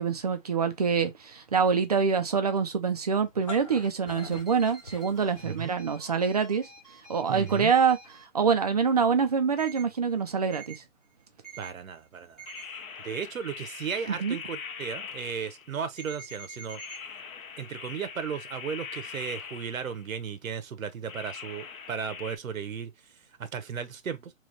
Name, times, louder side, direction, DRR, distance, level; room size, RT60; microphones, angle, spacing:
voice 1, 0.0-6.7 7.1-8.0 8.3-10.8 14.2-14.4, right 6 dB, 30° right, 0.4 m, -25 dB
sound 1, 3.2-5.8, left 3 dB, 25° left, 0.4 m, -44 dB
sound 2, 4.1-8.2 9.6-9.8 10.5-10.8 11.4-11.7 12.4-12.6 16.0-17.0, right 4 dB, ahead, 0.8 m, -47 dB
voice 2, 5.4-5.7 7.3-7.7 11.6-12.5 13.0-16.8 17.6-22.9 23.4-24.3, right 7 dB, 80° right, 0.9 m, -35 dB
Extra Terrestrial Signal, 12.5-15.9 16.7-20.1 21.1-22.4, left 6 dB, 90° left, 0.9 m, -42 dB
3.3 x 3.0 x 3.9 m
hypercardioid pair, 150°, 40 cm